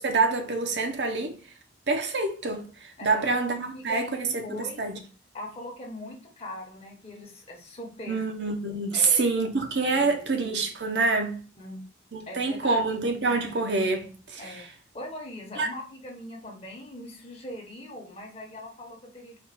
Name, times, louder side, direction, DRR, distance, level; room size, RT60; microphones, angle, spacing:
voice 1, 0.0-1.4 1.9-5.0 8.1-11.4 12.1-14.7 15.6-15.7, right 3 dB, 65° right, 0.7 m, -26 dB
voice 2, 3.0-3.3 3.6-4.1 4.4-4.8 5.3-8.2 8.9-9.3 9.9-10.4 11.6-11.8 12.3-12.8 14.4-14.6 14.9-19.4, left 1 dB, 30° left, 0.9 m, -41 dB
4.2 x 2.3 x 4.1 m
head